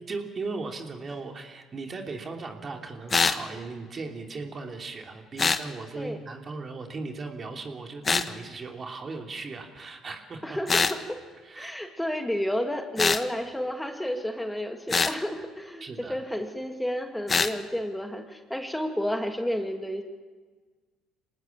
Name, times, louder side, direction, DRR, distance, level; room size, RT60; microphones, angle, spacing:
voice 1, 0.1-10.6 11.4-11.7 15.8-16.2, right 3 dB, 40° right, 3 dB, 3.1 m, -37 dB
sound 1, 3.1-3.4 5.4-5.6 8.0-8.3 10.7-11.0 13.0-13.2 14.9-15.2 17.3-17.5, left 4 dB, 35° left, 1.3 m, -23 dB
voice 2, 10.4-11.2 11.5-20.0, equal, 5° left, 5 dB, 2.3 m, -31 dB
26.0 x 19.0 x 7.4 m, 1.4 s
hypercardioid pair, 55°, 0 cm